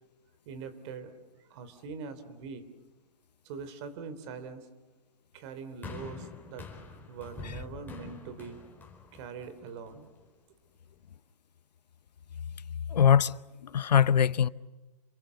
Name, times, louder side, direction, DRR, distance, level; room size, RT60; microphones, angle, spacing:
voice 1, 0.4-1.1 1.5-2.6 3.4-4.7 5.3-6.7 7.1-8.6 9.1-10.1, right 5 dB, 45° right, 3.3 m, -42 dB
sound 1, 5.8-10.2 11.0-11.1, left 4 dB, 10° left, 4.3 m, -45 dB
voice 2, 12.9-13.3 13.6-14.5, left 8 dB, 85° left, 0.8 m, -22 dB
28.0 x 22.5 x 7.0 m
hypercardioid pair, 135°, 21 cm